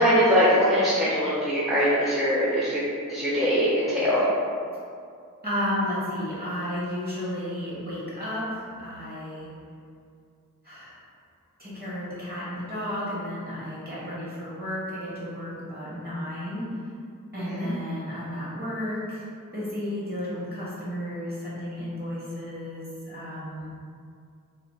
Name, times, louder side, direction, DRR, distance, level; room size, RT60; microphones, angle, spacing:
voice 1, 0.0-2.8 3.1-4.3 17.4-17.7, equal, ahead, -10 dB, 0.6 m, -22 dB
voice 2, 5.4-9.5 10.6-11.0 11.6-16.7 17.3-19.2 19.5-23.7, equal, 30° right, -9 dB, 1.2 m, -33 dB
2.8 x 2.1 x 3.2 m, 2.3 s
wide cardioid pair, 65°, 33 cm